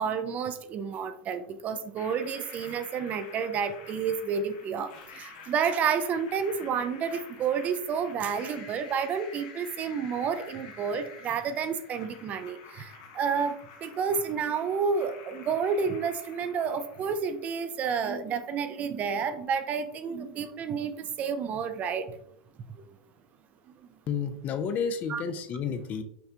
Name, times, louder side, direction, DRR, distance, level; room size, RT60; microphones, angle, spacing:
voice 1, 0.0-22.1 22.8-22.9 25.1-25.2, right 6 dB, 35° right, 10 dB, 0.4 m, -30 dB
sound 1, 2.0-17.9, left 5 dB, 65° left, 0.8 m, -49 dB
voice 2, 24.1-26.0, left 6 dB, 35° left, 9 dB, 0.4 m, -31 dB
5.9 x 2.2 x 2.7 m, 0.72 s
supercardioid pair, 125°, 5 cm